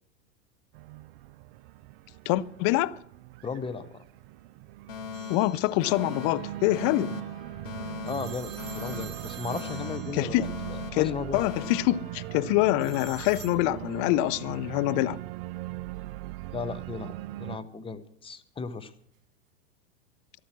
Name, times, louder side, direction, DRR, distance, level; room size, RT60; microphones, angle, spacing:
Organ, 0.7-17.6, right 17 dB, 45° right, 0.5 m, -40 dB
voice 1, 2.3-3.0 5.3-7.2 10.1-10.5 10.9-15.2, left 17 dB, 40° left, 0.6 m, -25 dB
voice 2, 3.4-4.0 8.0-11.5 16.5-17.1 17.4-18.9, left 5 dB, 15° left, 0.9 m, -36 dB
Alarm, 4.9-12.9, left 7 dB, 75° left, 1.8 m, -41 dB
sound 1, 5.1-5.9 8.1-10.7 12.8-13.6, right 9 dB, 70° right, 1.9 m, -46 dB
13.5 x 12.0 x 6.2 m
hypercardioid pair, 100°, 38 cm